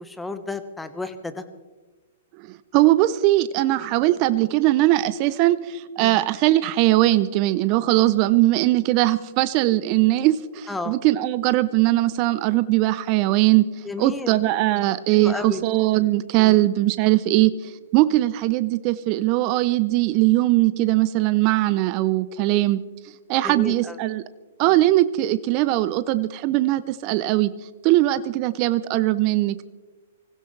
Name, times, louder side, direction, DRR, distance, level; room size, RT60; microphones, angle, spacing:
voice 1, 0.0-1.4 6.0-6.2 10.7-11.0 13.8-14.4 15.1-15.6 16.4-16.6 23.4-24.0, left 2 dB, 5° left, 9 dB, 1.2 m, -32 dB
voice 2, 2.5-13.6 14.0-22.8 23.3-24.2 24.6-27.5 27.8-29.7, right 16 dB, 40° right, 15 dB, 0.6 m, -20 dB
25.0 x 16.0 x 3.3 m, 1.3 s
hypercardioid pair, 120°, 0 cm